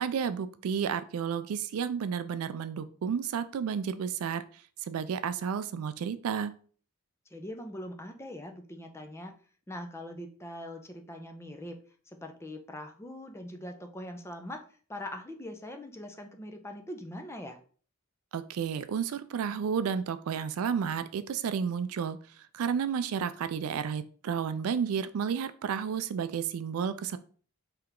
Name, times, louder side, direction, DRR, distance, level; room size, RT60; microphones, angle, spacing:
voice 1, 0.0-4.4 4.9-6.5 18.3-22.2 22.5-27.2, right 7 dB, 75° right, 12 dB, 0.3 m, -31 dB
voice 2, 7.3-9.3 9.7-11.8 12.2-14.6 14.9-17.6, left 1 dB, 10° left, 5 dB, 0.4 m, -42 dB
3.3 x 2.9 x 3.6 m, 0.43 s
head